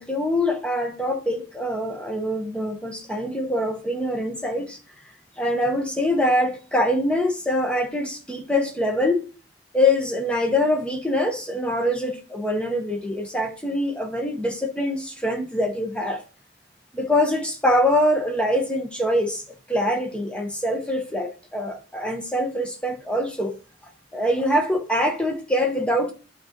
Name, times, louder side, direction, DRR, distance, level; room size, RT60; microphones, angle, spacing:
voice 1, 0.0-4.8 5.4-9.2 9.7-16.2 16.9-19.4 19.7-23.5 24.1-26.1, left 1 dB, 5° left, 1.0 m, -24 dB
10.5 x 3.9 x 3.0 m
head